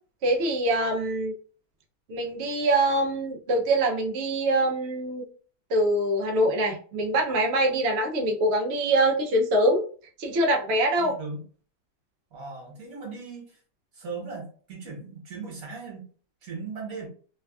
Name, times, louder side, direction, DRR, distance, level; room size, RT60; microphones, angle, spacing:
voice 1, 0.2-1.3 2.1-5.2 5.7-9.8 10.2-11.1, right 1 dB, 75° right, 1 dB, 0.6 m, -24 dB
voice 2, 11.0-11.4 12.3-13.6 13.9-16.1 16.4-17.1, right 4 dB, 55° right, -2 dB, 1.5 m, -38 dB
3.2 x 2.2 x 2.3 m, 0.42 s
omnidirectional pair, 1.9 m